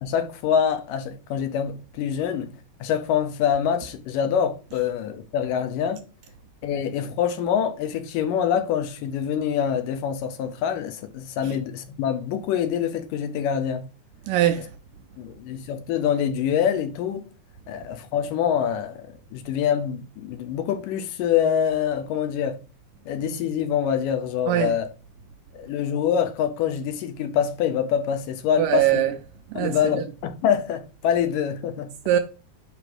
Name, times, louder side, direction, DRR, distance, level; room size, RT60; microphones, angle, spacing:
voice 1, 0.0-2.5 2.8-6.0 6.6-13.9 15.2-17.3 17.7-22.6 23.1-24.9 25.5-28.9 29.6-31.9, left 8 dB, 75° left, 2.2 m, -25 dB
voice 2, 14.3-14.7 24.5-24.7 28.6-29.1 29.5-29.9 32.1-32.2, right 12 dB, 75° right, 2.1 m, -22 dB
6.0 x 5.1 x 6.1 m
omnidirectional pair, 4.2 m